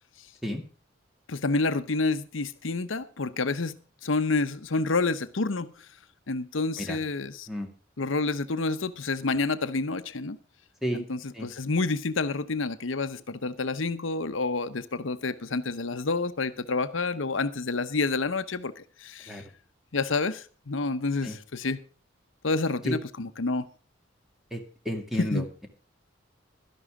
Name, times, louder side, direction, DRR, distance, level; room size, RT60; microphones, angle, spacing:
voice 1, 1.3-5.7 6.3-7.5 8.0-10.4 10.9-19.4 19.9-21.8 22.4-23.7 25.2-25.5, left 3 dB, 80° left, 0.9 m, -29 dB
voice 2, 24.5-25.7, equal, ahead, 2.0 m, -32 dB
12.5 x 11.0 x 4.9 m
head